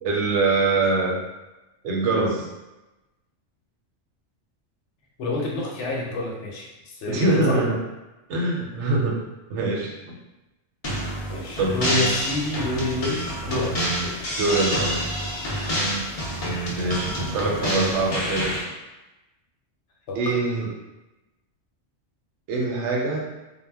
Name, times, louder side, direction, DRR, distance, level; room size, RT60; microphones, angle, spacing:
voice 1, 0.0-1.2 1.8-2.5 7.1-7.8 8.3-9.2 9.5-10.2 10.8-11.2 11.6-11.8 14.4-15.0 16.8-18.6 20.2-20.7 22.5-23.2, right 3 dB, 70° right, -1 dB, 0.8 m, -24 dB
voice 2, 5.2-7.6 11.3-13.7 14.0-14.1 20.1-20.4, left 2 dB, 70° left, -3 dB, 0.9 m, -28 dB
sound 1, 10.8-18.6, equal, 45° left, 0.4 m, -27 dB
2.1 x 2.0 x 3.4 m, 1.0 s
omnidirectional pair, 1.3 m